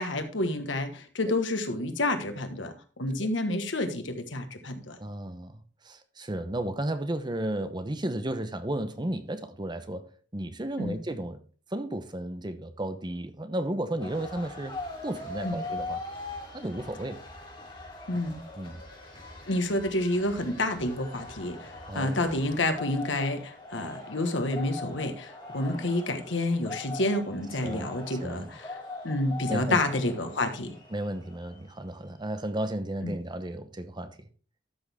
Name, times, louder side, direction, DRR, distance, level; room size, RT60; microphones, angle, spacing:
voice 1, 0.0-5.0 10.8-11.0 15.4-15.6 18.1-18.4 19.5-28.8 29.0-30.7 33.0-33.1, left 2 dB, 80° left, 1.4 m, -29 dB
voice 2, 5.0-11.4 11.7-14.7 15.0-16.0 16.5-17.2 18.6-18.8 21.9-22.2 27.6-27.9 28.2-28.5 29.5-29.8 30.9-34.2, right 1 dB, 25° right, 0.8 m, -33 dB
sound 1, 14.0-31.8, left 2 dB, 25° left, 3.3 m, -42 dB
12.5 x 6.3 x 3.5 m
head